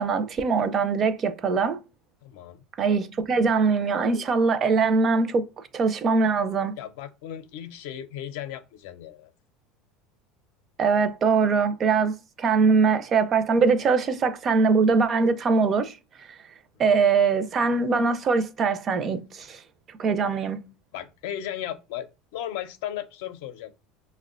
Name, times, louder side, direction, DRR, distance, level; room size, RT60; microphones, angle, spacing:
voice 1, 0.0-1.8 2.8-5.4 5.7-6.8 10.8-15.9 16.8-19.6 20.0-20.6, right 4 dB, 35° right, 0.4 m, -22 dB
voice 2, 2.2-2.6 6.8-9.3 20.9-23.7, left 11 dB, 75° left, 0.5 m, -36 dB
5.3 x 2.1 x 2.5 m
supercardioid pair, 110°, 0 cm